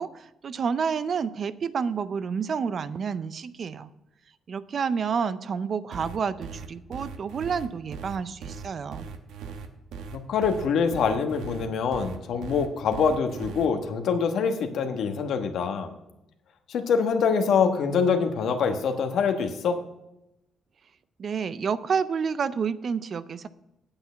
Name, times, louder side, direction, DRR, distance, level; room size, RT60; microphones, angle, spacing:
voice 1, 0.0-3.9 4.5-9.1 21.2-23.5, right 6 dB, 50° right, 15 dB, 0.5 m, -29 dB
sound 1, 5.9-13.7, right 6 dB, 90° right, 1.0 m, -39 dB
voice 2, 10.1-15.9 16.7-19.8, left 6 dB, 70° left, 6 dB, 1.2 m, -25 dB
8.8 x 8.3 x 5.6 m, 0.88 s
cardioid pair, 90°, 0 cm